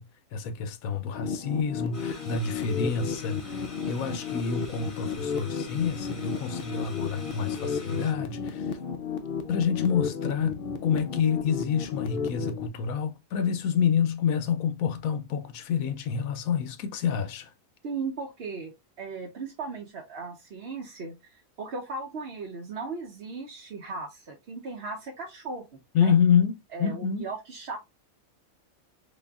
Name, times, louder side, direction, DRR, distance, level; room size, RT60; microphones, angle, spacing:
voice 1, 0.0-8.8 9.5-17.5 25.9-27.3, left 7 dB, 80° left, 1.0 m, -28 dB
sound 1, 1.1-12.7, left 6 dB, 55° left, 0.6 m, -33 dB
sound 2, 1.9-8.1, left 2 dB, 25° left, 0.9 m, -47 dB
voice 2, 17.8-25.6 26.0-26.2 26.7-27.8, right 4 dB, 55° right, 0.8 m, -37 dB
4.1 x 3.4 x 2.3 m
omnidirectional pair, 1.5 m